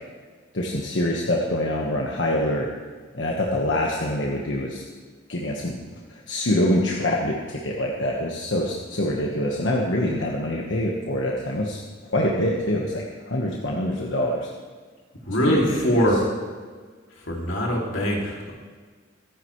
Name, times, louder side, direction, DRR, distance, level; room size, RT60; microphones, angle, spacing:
voice 1, 0.5-2.7 3.1-4.8 5.3-5.8 6.1-11.8 12.1-14.5 15.4-16.1, left 1 dB, 70° left, -2 dB, 1.4 m, -25 dB
voice 2, 15.3-16.2 17.3-18.5, equal, 85° left, -1 dB, 2.8 m, -22 dB
25.0 x 9.9 x 3.2 m, 1.5 s
head